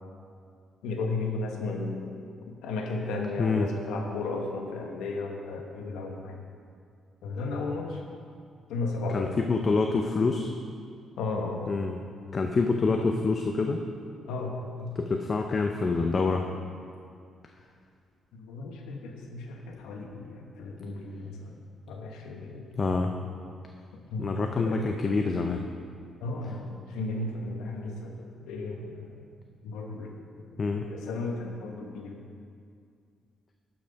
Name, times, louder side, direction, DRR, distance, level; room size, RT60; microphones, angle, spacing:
voice 1, 0.8-2.1 2.6-6.4 7.2-8.0 8.7-9.3 11.2-11.7 14.3-15.0 18.3-21.6 21.9-22.7 23.9-24.9 26.2-29.1 29.6-30.1 30.9-32.2, left 3 dB, 90° left, 2 dB, 1.2 m, -34 dB
voice 2, 3.4-3.7 9.1-10.5 11.7-12.0 12.3-13.8 15.0-16.5 22.8-23.1 24.2-25.6 30.6-30.9, left 4 dB, 40° left, 4 dB, 0.6 m, -26 dB
11.0 x 6.0 x 5.2 m, 2.3 s
cardioid pair, 90°, 0 cm